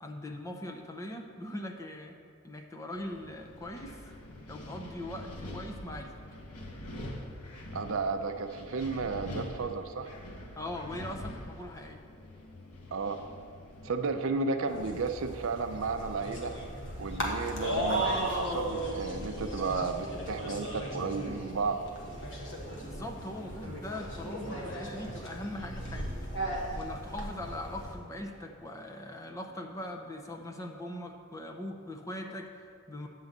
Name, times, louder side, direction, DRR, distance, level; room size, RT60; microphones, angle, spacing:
voice 1, 0.0-2.2 2.4-4.0 4.5-6.1 10.6-12.0 22.8-26.1 26.7-33.1, left 1 dB, 15° left, 2 dB, 0.5 m, -41 dB
Wind, 2.9-14.5, left 1 dB, 90° left, 1.0 m, -45 dB
voice 2, 7.7-10.1 12.9-13.2 13.8-16.5 17.0-21.8, right 4 dB, 60° right, 8 dB, 0.5 m, -33 dB
sound 1, 14.7-27.9, right 1 dB, 55° left, 1.3 m, -36 dB
sound 2, 15.3-30.6, right 1 dB, 30° left, 1.1 m, -51 dB
9.3 x 3.9 x 7.2 m, 2.3 s
head